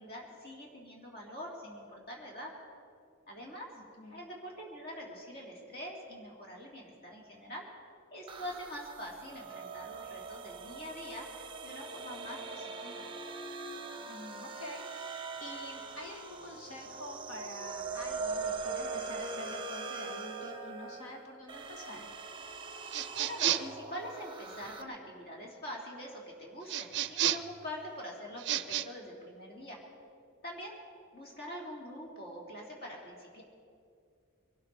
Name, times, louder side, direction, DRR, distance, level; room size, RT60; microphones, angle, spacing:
voice 1, 0.0-2.5 3.3-3.7 4.1-7.7 8.1-13.1 23.1-29.8 30.4-30.7 31.1-33.4, equal, 45° left, -2 dB, 3.3 m, -44 dB
voice 2, 3.8-4.2 14.0-22.1, left 1 dB, 65° left, 1 dB, 2.4 m, -47 dB
sound 1, 8.3-24.8, right 4 dB, 20° right, 0.8 m, -42 dB
sound 2, 22.9-23.8 26.7-27.6 28.4-28.9, right 11 dB, 50° right, 0.5 m, -31 dB
23.0 x 12.5 x 4.8 m, 2.4 s
head